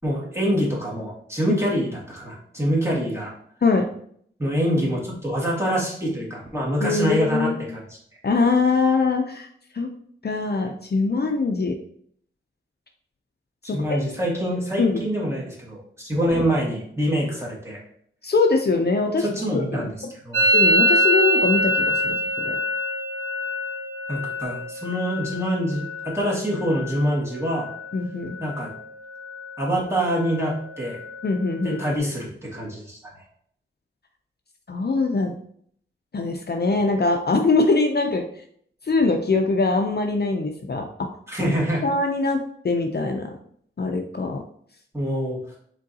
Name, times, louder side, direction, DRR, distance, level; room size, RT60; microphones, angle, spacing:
voice 1, 0.0-3.3 4.4-7.8 13.6-17.8 19.2-19.9 20.2-20.5 24.1-27.7 28.4-28.7 29.6-31.0 31.6-33.0 41.3-41.8 44.9-45.4, equal, 10° right, -4 dB, 1.9 m, -25 dB
voice 2, 6.8-7.6 8.2-9.5 9.7-9.9 10.2-11.8 13.6-14.0 14.8-15.1 18.2-19.3 19.5-19.9 20.5-22.6 27.9-28.4 31.2-31.8 34.7-35.4 36.1-38.2 38.8-41.1 41.4-41.5 41.8-43.4 43.8-44.4, left 3 dB, 50° left, 4 dB, 0.5 m, -22 dB
Musical instrument, 20.3-28.0 28.2-28.8 29.1-29.7 29.9-32.0, equal, 75° right, 0.7 m, -25 dB
5.1 x 3.8 x 2.7 m, 0.63 s
wide cardioid pair, 55°, 21 cm